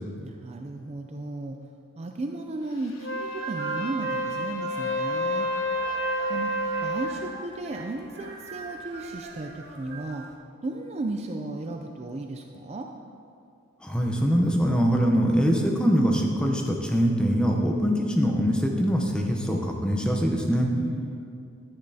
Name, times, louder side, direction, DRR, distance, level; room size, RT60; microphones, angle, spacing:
voice 1, 0.2-1.6 2.0-5.5 6.3-6.5 6.8-10.3 10.6-12.9 20.7-21.3, right 2 dB, 30° right, 3 dB, 0.3 m, -35 dB
Wind instrument woodwind instrument, 2.9-7.2, equal, 70° left, 0.8 m, -29 dB
sound 1, 3.1-10.3, right 5 dB, 50° right, 1.0 m, -43 dB
voice 2, 13.8-20.7, equal, 5° left, 1 dB, 0.7 m, -23 dB
10.5 x 9.7 x 2.8 m, 2.5 s
head